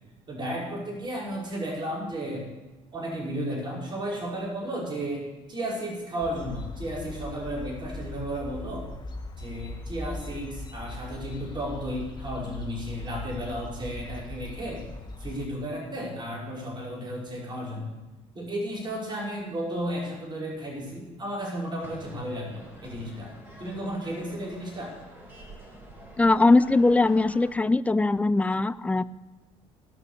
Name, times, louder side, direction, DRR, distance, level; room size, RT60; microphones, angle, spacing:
voice 1, 0.3-2.5 2.9-5.2 5.5-8.9 9.4-14.8 15.2-18.0 18.3-23.3 23.6-25.0, equal, 30° right, -4 dB, 5.6 m, -33 dB
sound 1, 6.2-15.5, left 2 dB, 30° left, 1.8 m, -39 dB
sound 2, 21.8-27.5, right 1 dB, 15° right, 5.1 m, -47 dB
voice 2, 26.2-29.0, left 3 dB, 10° left, 15 dB, 0.5 m, -21 dB
18.0 x 6.3 x 6.9 m, 1.1 s
supercardioid pair, 90°, 15 cm